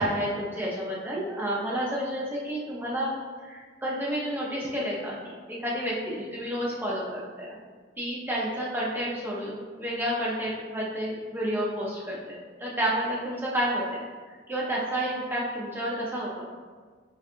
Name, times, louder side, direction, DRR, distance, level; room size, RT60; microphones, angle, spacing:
voice 1, 0.0-3.2 3.4-5.2 5.6-7.6 8.0-16.5, equal, 10° right, -5 dB, 0.6 m, -30 dB
4.3 x 2.3 x 2.5 m, 1.5 s
head